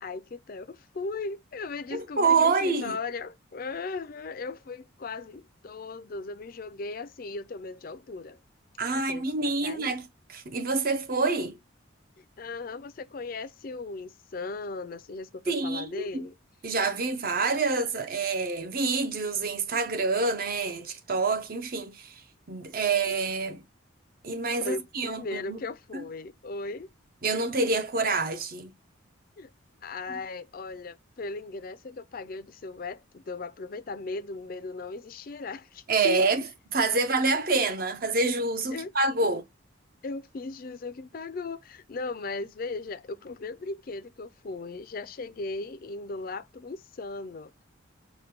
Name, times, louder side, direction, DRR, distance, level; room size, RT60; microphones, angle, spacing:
voice 1, 0.0-8.4 9.1-9.9 12.2-16.3 23.1-23.2 24.6-26.9 29.4-29.5 29.8-36.2 37.0-37.1 38.7-38.9 39.2-39.4 40.0-47.6, left 3 dB, 45° left, 0.4 m, -37 dB
voice 2, 1.9-3.0 8.8-11.6 15.5-16.3 16.6-22.1 22.5-23.6 24.2-25.6 25.9-26.0 27.2-28.7 30.1-30.2 35.9-36.4 36.7-39.4, right 3 dB, 45° right, 0.6 m, -27 dB
5.0 x 2.2 x 2.9 m
head